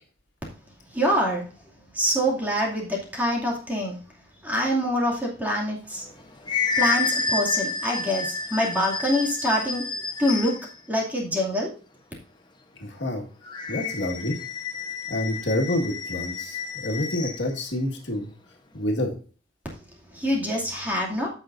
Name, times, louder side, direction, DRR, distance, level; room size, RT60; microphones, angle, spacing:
voice 1, 0.9-1.5 1.9-4.0 4.4-6.1 6.8-9.8 10.2-10.5 10.9-11.7 20.1-21.3, equal, 10° right, -3 dB, 2.5 m, -25 dB
sound 1, 6.0-10.7 13.5-17.5, left 4 dB, 25° left, 1.0 m, -30 dB
voice 2, 12.8-13.2 13.7-14.4 15.1-18.3 18.7-19.1, left 1 dB, 75° left, 0 dB, 1.8 m, -28 dB
15.0 x 5.7 x 2.6 m, 0.40 s
head